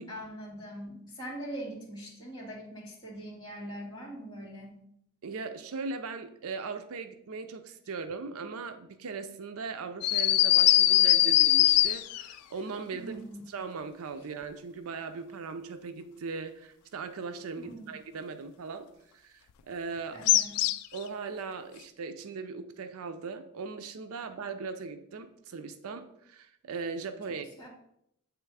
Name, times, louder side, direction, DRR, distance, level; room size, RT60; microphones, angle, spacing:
voice 1, 0.1-4.8 12.9-13.4 17.6-17.9 20.1-20.6 27.6-27.7, right 1 dB, 20° left, -7 dB, 2.1 m, -42 dB
voice 2, 5.2-13.1 13.5-18.9 19.1-20.2 20.9-27.5, right 4 dB, 65° right, 9 dB, 0.5 m, -39 dB
sound 1, 10.0-12.3 20.3-21.0, left 13 dB, 90° left, 0.3 m, -21 dB
8.1 x 3.2 x 4.7 m, 0.75 s
head